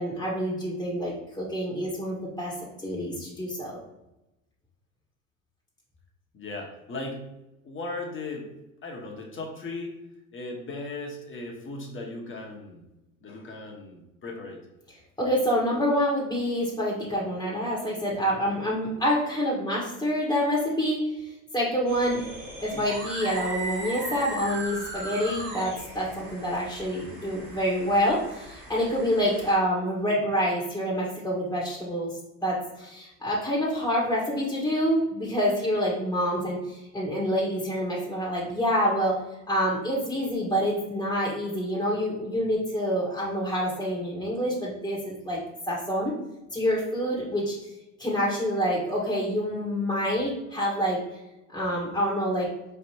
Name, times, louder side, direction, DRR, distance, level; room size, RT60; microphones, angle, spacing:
voice 1, 0.0-2.5 2.8-3.8 15.2-22.3 22.6-39.2 39.5-45.4 45.7-46.1 46.5-47.5 48.0-51.0 51.5-52.5, equal, 10° left, -5 dB, 1.5 m, -27 dB
voice 2, 6.3-7.2 7.6-8.5 8.8-9.9 10.3-12.9 13.2-14.6 22.7-22.8, left 2 dB, 30° left, 0 dB, 1.4 m, -37 dB
sound 1, 21.9-29.5, right 2 dB, 85° right, 1.5 m, -38 dB
4.9 x 3.5 x 2.9 m, 0.94 s
hypercardioid pair, 70°, 39 cm